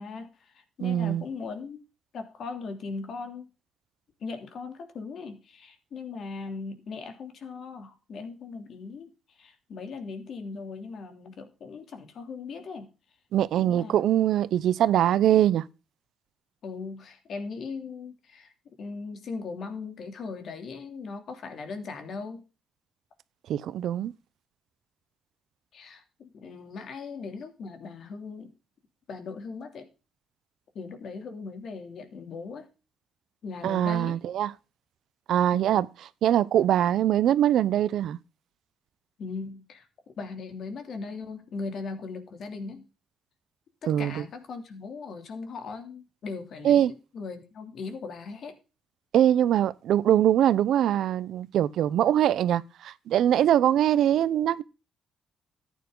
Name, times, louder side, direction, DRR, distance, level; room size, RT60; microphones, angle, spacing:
voice 1, 0.0-1.8 2.1-3.5 4.2-9.1 9.4-12.9 13.6-13.9 16.6-18.5 18.8-22.4 25.7-28.5 29.1-29.9 30.7-32.7 33.4-34.2 35.5-35.9 39.2-39.9 40.2-42.9 43.8-48.5, left 4 dB, 60° left, 3.0 m, -39 dB
voice 2, 0.8-1.2 13.3-15.6 23.5-24.1 33.6-34.5 35.3-35.9 36.2-38.2 43.9-44.2 46.6-46.9 49.1-54.6, right 11 dB, 75° right, 0.7 m, -23 dB
14.0 x 9.2 x 3.9 m
cardioid pair, 90°, 0 cm